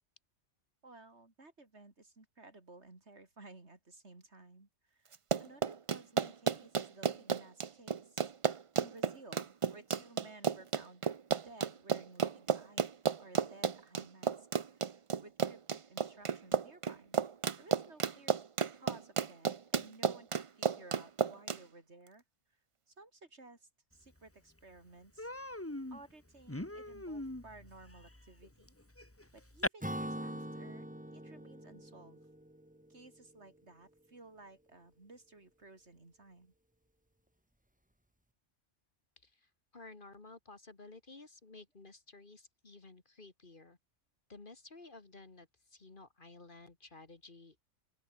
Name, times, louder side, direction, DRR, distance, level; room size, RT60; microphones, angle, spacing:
voice 1, 0.8-8.3 8.8-11.1 11.4-12.9 13.2-14.5 14.7-17.2 17.6-18.4 18.7-22.2 22.9-25.3 25.9-28.8 29.3-32.2 32.9-36.5, right 2 dB, 65° right, 4.0 m, -56 dB
Run, 5.1-21.6, right 6 dB, 35° right, 0.5 m, -32 dB
Human voice, 24.2-24.3 24.6-24.8 25.2-29.7, left 1 dB, 10° left, 1.7 m, -42 dB
Acoustic guitar / Strum, 29.8-33.4, right 1 dB, 5° right, 1.7 m, -43 dB
voice 2, 39.2-43.8 44.3-47.6, left 3 dB, 45° left, 2.1 m, -54 dB
open air
omnidirectional pair, 1.3 m